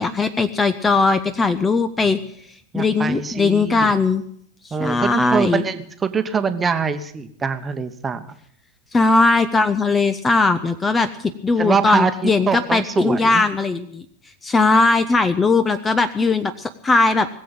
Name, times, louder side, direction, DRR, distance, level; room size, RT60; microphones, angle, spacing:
voice 1, 0.0-2.2 2.7-4.2 4.6-5.6 8.9-14.0 14.4-17.3, left 3 dB, 15° left, 12 dB, 0.7 m, -19 dB
voice 2, 2.7-3.9 4.7-8.3 11.6-13.4, right 5 dB, 15° right, 9 dB, 1.1 m, -24 dB
20.0 x 7.7 x 9.0 m, 0.66 s
figure-of-eight pair, 90°, 0 cm